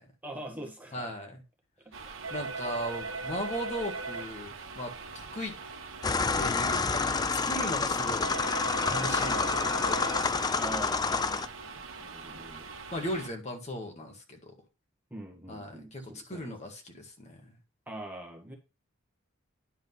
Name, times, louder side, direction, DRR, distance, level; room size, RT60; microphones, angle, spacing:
voice 1, 0.2-1.1 9.1-9.3 10.5-11.5 12.0-12.7 15.1-16.5 17.9-18.5, right 1 dB, 10° right, 1 dB, 1.7 m, -43 dB
voice 2, 0.9-1.4 2.3-5.5 6.4-8.3 8.9-10.6 11.1-11.4 12.9-14.5 15.5-17.5, equal, 35° left, 2 dB, 1.8 m, -38 dB
sound 1, 1.9-13.3, right 4 dB, 90° right, 1.2 m, -40 dB
sound 2, 6.0-11.5, left 4 dB, 20° left, 0.4 m, -28 dB
10.5 x 3.9 x 5.5 m, 0.28 s
head